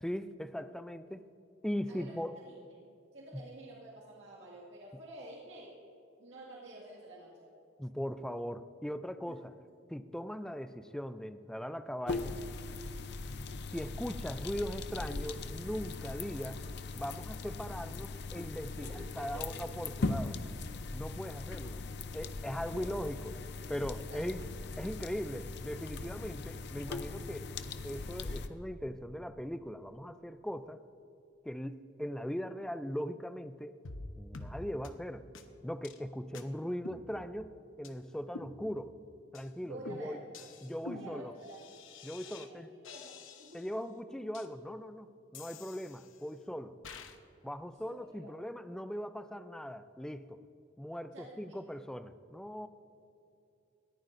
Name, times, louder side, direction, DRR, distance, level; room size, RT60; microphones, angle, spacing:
voice 1, 0.0-1.2 1.6-2.4 3.3-3.4 7.8-9.5 9.9-12.4 13.7-16.7 16.9-20.4 20.9-21.8 22.1-23.4 23.7-24.5 24.8-27.5 27.8-30.8 31.4-33.8 34.2-35.3 35.6-39.0 39.3-40.2 40.6-41.3 42.0-42.7 43.5-46.8 47.4-50.4 50.8-52.7, equal, 5° left, 11 dB, 0.4 m, -39 dB
voice 2, 1.9-2.5 3.1-5.8 6.2-7.5 9.3-9.4 18.8-19.5 22.7-22.9 23.8-24.2 39.6-40.3 40.8-41.6 42.2-43.6 47.8-48.3 51.1-51.6, right 1 dB, 75° right, -4 dB, 2.0 m, -50 dB
sound 1, 12.1-28.5, left 3 dB, 60° left, 0.6 m, -40 dB
sound 2, 33.8-34.1 34.3-34.5 34.8-34.9 35.3-35.4 35.8-36.0 36.3-36.4 36.8-37.5 37.8-37.9 38.3-39.0 39.3-39.5 39.8-42.5 42.8-43.8 44.3-44.5 45.3-46.3 46.8-47.2, left 3 dB, 85° left, 0.9 m, -48 dB
20.5 x 14.5 x 2.6 m, 2.6 s
head